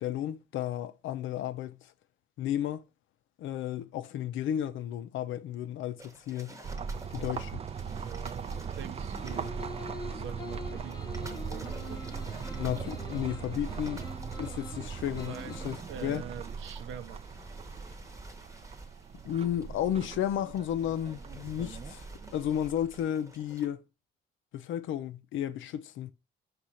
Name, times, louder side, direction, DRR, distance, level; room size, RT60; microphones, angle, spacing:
voice 1, 0.0-1.9 2.4-2.8 3.4-6.6 7.1-7.5 12.6-14.0 14.4-16.2 19.2-23.8 24.5-26.1, left 10 dB, 80° left, 0.5 m, -33 dB
sound 1, 6.0-23.7, right 2 dB, 15° right, 0.9 m, -50 dB
sound 2, 6.6-23.0, right 6 dB, 30° right, 0.3 m, -40 dB
voice 2, 8.0-9.5 10.0-12.2 15.3-15.6 15.9-17.4, right 9 dB, 75° right, 0.6 m, -45 dB
sound 3, 9.1-15.8, left 2 dB, 20° left, 0.7 m, -45 dB
5.0 x 2.4 x 4.1 m
cardioid pair, 90°, 20 cm